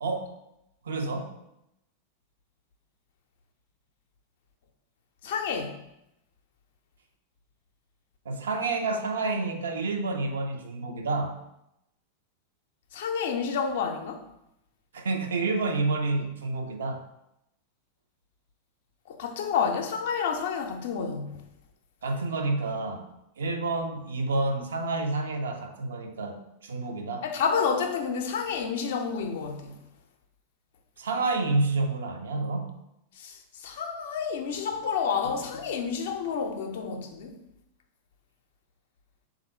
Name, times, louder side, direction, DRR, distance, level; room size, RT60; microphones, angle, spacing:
voice 1, 0.0-0.3 0.9-1.3 8.3-11.4 14.9-17.0 22.0-23.1 23.4-26.4 26.6-27.2 31.0-32.7, right 3 dB, 65° right, 5 dB, 0.4 m, -29 dB
voice 2, 5.2-5.8 12.9-14.2 19.1-21.4 27.2-29.8 33.2-37.4, left 6 dB, 55° left, 5 dB, 0.4 m, -29 dB
3.5 x 2.5 x 4.1 m, 0.84 s
figure-of-eight pair, 90°, 0 cm